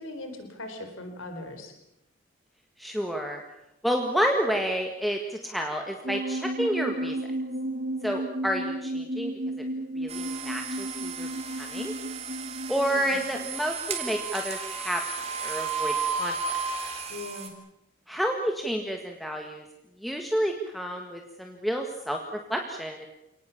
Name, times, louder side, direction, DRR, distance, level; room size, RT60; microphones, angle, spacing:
voice 1, 0.0-1.7 12.9-13.2 17.1-17.5, left 2 dB, 80° left, 6 dB, 4.4 m, -39 dB
voice 2, 2.8-3.4 3.8-7.2 8.0-9.3 10.0-11.3 11.6-11.9 12.7-15.0 15.4-16.4 18.1-19.6 20.0-22.2 22.5-23.1, equal, ahead, 2 dB, 1.9 m, -29 dB
sound 1, 6.0-13.5, right 1 dB, 50° right, 2.3 m, -33 dB
sound 2, 10.1-17.5, right 5 dB, 30° right, 3.6 m, -34 dB
29.0 x 19.0 x 7.3 m, 0.84 s
head